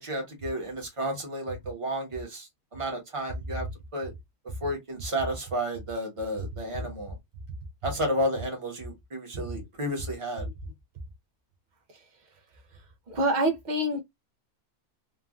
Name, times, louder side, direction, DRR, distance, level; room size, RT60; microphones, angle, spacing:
voice 1, 0.0-3.7 3.9-4.1 4.6-7.1 7.8-10.4, equal, 25° right, 0.9 m, -32 dB
voice 2, 13.1-14.0, right 1 dB, 80° right, 0.4 m, -26 dB
3.2 x 2.3 x 2.3 m
omnidirectional pair, 1.5 m